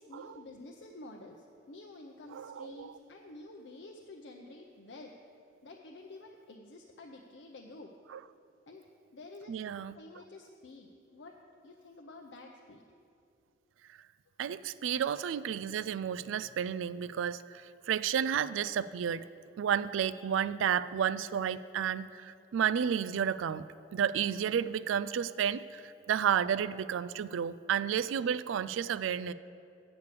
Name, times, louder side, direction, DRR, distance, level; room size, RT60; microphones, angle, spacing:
voice 1, 0.0-5.1 5.6-7.9 8.7-8.8 9.1-9.5 9.9-12.8, left 2 dB, 70° left, 1 dB, 0.6 m, -50 dB
voice 2, 2.3-2.9 8.1-8.2 9.5-10.0 14.4-19.2 19.6-23.6 23.9-29.3, right 8 dB, 85° right, 17 dB, 0.3 m, -31 dB
8.1 x 7.0 x 6.7 m, 2.5 s
head